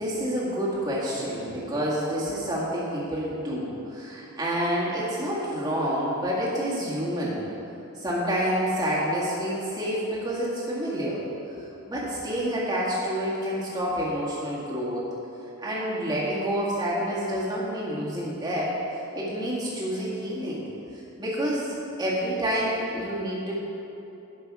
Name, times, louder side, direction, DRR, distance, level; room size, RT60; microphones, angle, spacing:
voice 1, 0.0-7.4 8.0-11.2 11.5-15.1 15.6-18.8 19.1-20.6 21.2-23.6, equal, 20° right, -7 dB, 1.9 m, -28 dB
11.0 x 5.9 x 4.8 m, 2.9 s
head